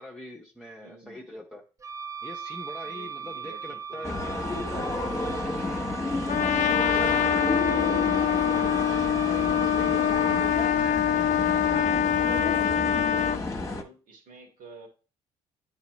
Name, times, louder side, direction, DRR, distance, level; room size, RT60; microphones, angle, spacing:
voice 1, 0.0-1.6 2.2-4.3 6.9-7.8 9.6-10.4, left 1 dB, 5° left, -3 dB, 1.1 m, -43 dB
voice 2, 0.8-1.3 2.8-7.3 7.6-9.0 9.8-11.8 12.2-14.9, right 3 dB, 60° right, 2 dB, 2.1 m, -49 dB
Wind instrument woodwind instrument, 1.8-10.6, right 6 dB, 20° right, 0.4 m, -38 dB
sound 1, 4.0-13.8, left 2 dB, 20° left, 1.3 m, -31 dB
Trumpet, 6.3-13.4, left 9 dB, 55° left, 0.4 m, -24 dB
9.4 x 3.4 x 3.1 m, 0.34 s
hypercardioid pair, 60°, 15 cm